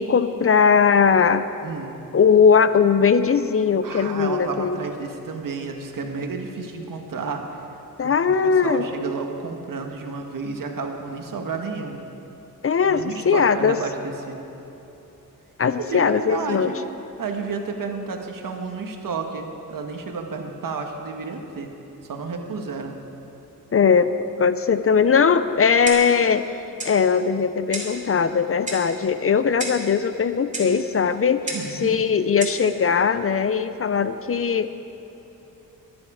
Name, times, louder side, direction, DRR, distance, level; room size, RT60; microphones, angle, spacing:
voice 1, 0.0-1.5 2.1-4.8 8.0-8.8 12.6-13.8 15.6-16.7 23.7-26.4 26.8-31.4 31.8-34.7, left 6 dB, 40° left, 11 dB, 0.5 m, -19 dB
voice 2, 1.6-2.0 3.8-7.4 8.0-12.0 12.8-14.4 15.8-16.8 17.2-21.7 22.0-23.0 31.5-32.0, right 4 dB, 70° right, 4 dB, 1.5 m, -31 dB
Clock, 25.9-26.2 26.8-27.0 27.7-28.0 28.7-28.9 29.6-29.9 30.5-30.7 31.5-31.7 32.4-32.6, right 2 dB, 20° right, 2.5 m, -31 dB
22.5 x 9.5 x 4.9 m, 3.0 s
wide cardioid pair, 130°, 34 cm